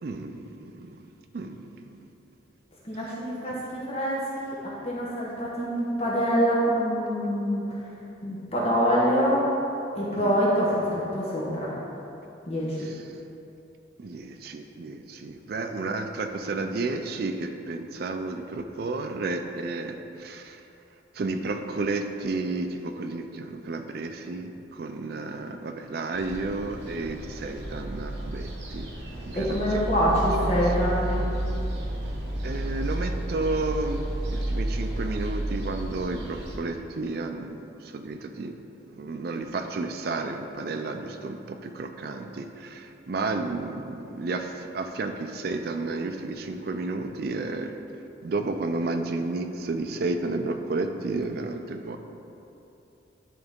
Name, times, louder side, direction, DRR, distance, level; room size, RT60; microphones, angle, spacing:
voice 1, 0.0-2.1 2.9-3.1 3.5-3.6 10.1-10.4 12.8-13.0 14.0-20.6 21.1-28.9 29.2-30.2 32.4-38.6 38.9-47.7 48.2-52.0, right 3 dB, 55° right, 6 dB, 0.4 m, -32 dB
voice 2, 2.8-4.6 4.8-7.7 8.2-9.4 9.9-11.7 12.5-12.8 29.3-31.3, equal, 35° left, -6 dB, 0.9 m, -25 dB
sound 1, 26.1-36.6, right 1 dB, 70° right, 1.0 m, -31 dB
10.5 x 3.9 x 3.6 m, 2.8 s
head